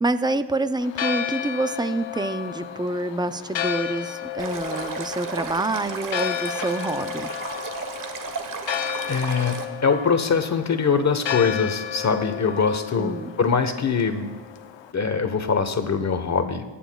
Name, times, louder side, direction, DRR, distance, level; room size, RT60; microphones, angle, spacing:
voice 1, 0.0-7.3 13.0-13.3, right 2 dB, 10° right, 11 dB, 0.4 m, -27 dB
Church bell, 0.8-14.9, left 10 dB, 70° left, 0.8 m, -33 dB
Stream, 4.4-9.6, right 4 dB, 45° right, 1.1 m, -33 dB
voice 2, 9.1-14.3 14.9-16.6, left 5 dB, 35° left, 8 dB, 1.2 m, -23 dB
19.0 x 10.0 x 2.3 m, 1.3 s
cardioid pair, 100°, 46 cm